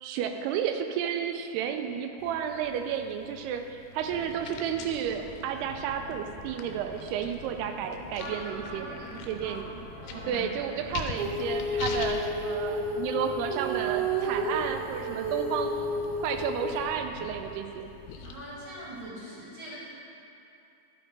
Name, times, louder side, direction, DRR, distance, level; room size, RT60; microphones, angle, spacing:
voice 1, 0.0-8.9 9.3-9.7 10.3-15.9 16.2-17.9, right 8 dB, 85° right, 6 dB, 2.5 m, -32 dB
sound 1, 2.2-19.1, left 5 dB, 85° left, 2.7 m, -45 dB
sound 2, 4.0-17.5, left 2 dB, 65° left, 2.3 m, -46 dB
voice 2, 8.2-9.1 9.4-9.6 10.0-10.5 18.2-19.8, right 1 dB, 45° right, -7 dB, 1.9 m, -41 dB
Female singing, 11.2-16.9, right 1 dB, 65° right, 2.2 m, -31 dB
11.5 x 5.3 x 4.6 m, 2.8 s
omnidirectional pair, 4.7 m